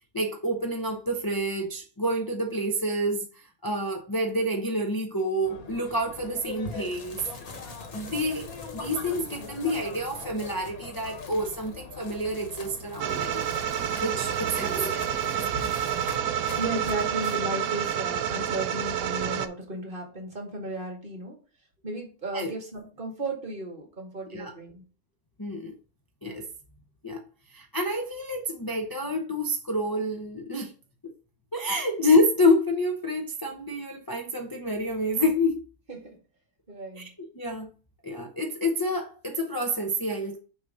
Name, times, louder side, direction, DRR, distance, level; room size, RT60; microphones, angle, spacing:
voice 1, 0.1-7.2 7.9-8.5 8.7-13.4 14.0-14.8 15.4-15.7 22.3-22.5 24.3-24.5 25.4-25.7 26.2-26.5 27.0-27.2 27.5-30.7 31.5-35.6 36.9-37.7 38.0-40.4, left 1 dB, 20° left, 0.6 m, -28 dB
sound 1, 5.4-17.2, left 3 dB, 80° left, 1.7 m, -43 dB
sound 2, 6.6-17.4, left 3 dB, 65° left, 1.6 m, -46 dB
sound 3, 13.0-19.5, right 9 dB, 80° right, 1.0 m, -29 dB
voice 2, 14.5-15.7 15.9-21.4 21.8-24.8 35.9-36.2 36.7-37.1, right 2 dB, 40° right, 2.1 m, -35 dB
6.5 x 3.3 x 5.3 m
omnidirectional pair, 1.5 m